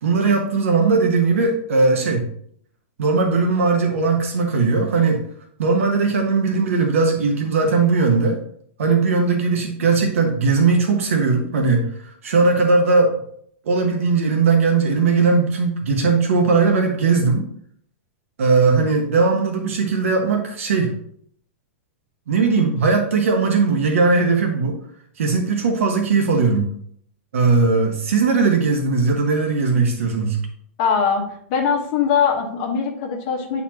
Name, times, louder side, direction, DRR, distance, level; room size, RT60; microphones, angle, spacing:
voice 1, 0.0-2.3 3.0-5.2 5.6-8.4 8.8-13.1 13.7-17.4 18.4-20.9 22.3-24.8 25.2-26.7 27.3-30.4, right 4 dB, 80° right, 2 dB, 1.0 m, -18 dB
voice 2, 30.8-31.2 31.5-33.6, left 6 dB, 30° left, -1 dB, 1.2 m, -21 dB
8.7 x 4.2 x 2.9 m, 0.65 s
supercardioid pair, 180°, 7 cm